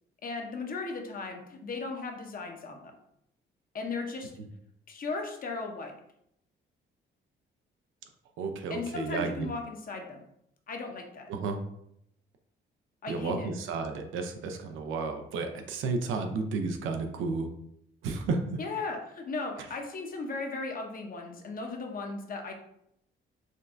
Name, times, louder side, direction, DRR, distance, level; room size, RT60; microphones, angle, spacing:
voice 1, 0.2-2.8 3.7-4.3 4.9-5.9 8.7-10.2 10.7-11.3 13.0-13.5 18.6-22.5, left 3 dB, 45° left, 3 dB, 0.7 m, -36 dB
voice 2, 8.4-9.5 11.3-11.6 13.1-17.5 18.0-18.6, right 4 dB, 90° right, 5 dB, 0.5 m, -32 dB
5.1 x 2.2 x 2.5 m, 0.74 s
cardioid pair, 90°, 20 cm